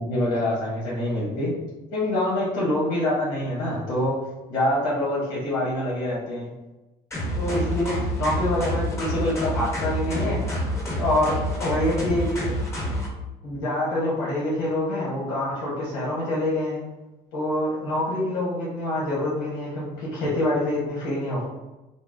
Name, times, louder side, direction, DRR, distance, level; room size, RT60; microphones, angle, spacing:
voice 1, 0.0-1.5 1.9-4.2 4.5-6.5 7.3-10.4 11.0-12.5 13.4-16.8 17.3-21.4, left 1 dB, 90° left, -6 dB, 1.2 m, -26 dB
sound 1, 7.1-13.1, equal, 15° left, 1.1 m, -28 dB
5.5 x 2.1 x 2.6 m, 1.0 s
cardioid pair, 110°, 17 cm